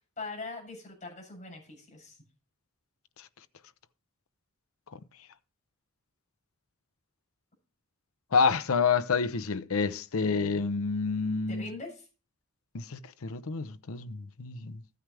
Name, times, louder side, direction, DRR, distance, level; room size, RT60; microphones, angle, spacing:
voice 1, 0.2-2.2 11.5-12.1, left 3 dB, 35° left, 7.6 m, -41 dB
voice 2, 8.3-11.7 12.7-14.8, left 5 dB, 80° left, 0.7 m, -28 dB
14.0 x 9.5 x 3.3 m
head